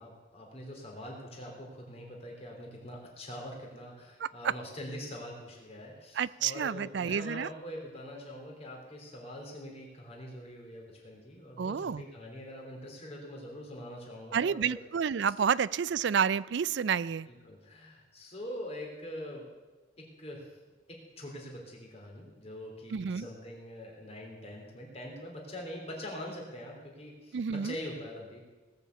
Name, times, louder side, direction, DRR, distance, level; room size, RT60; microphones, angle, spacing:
voice 1, 0.0-14.8 17.3-19.5 20.0-20.6 20.9-28.4, left 1 dB, 30° left, 0 dB, 3.6 m, -44 dB
voice 2, 4.2-4.5 6.2-7.5 11.6-12.0 14.3-17.3 22.9-23.3 27.3-27.7, right 7 dB, 60° right, 20 dB, 0.4 m, -30 dB
18.5 x 7.1 x 8.2 m, 1.3 s
head